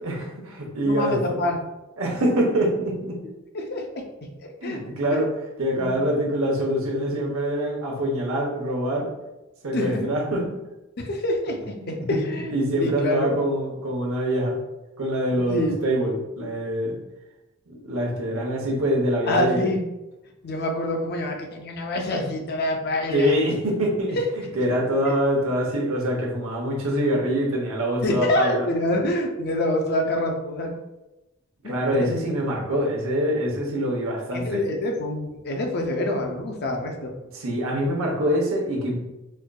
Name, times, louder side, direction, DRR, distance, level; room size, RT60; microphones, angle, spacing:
voice 1, 0.0-1.3 2.0-3.2 4.6-5.3 5.6-9.1 9.6-10.4 11.8-14.6 15.0-17.0 17.7-19.7 23.1-28.7 31.6-34.6 37.3-39.0, equal, 70° right, -1 dB, 0.9 m, -25 dB
voice 2, 0.8-1.6 3.5-4.0 4.4-4.8 5.1-5.2 5.8-5.9 9.7-10.1 11.0-13.3 15.5-15.8 19.3-19.8 20.4-23.3 24.2-24.3 25.1-25.2 28.0-30.7 31.6-32.1 34.3-37.1, left 1 dB, 50° left, 2 dB, 0.5 m, -26 dB
4.3 x 2.5 x 2.2 m, 1.0 s
head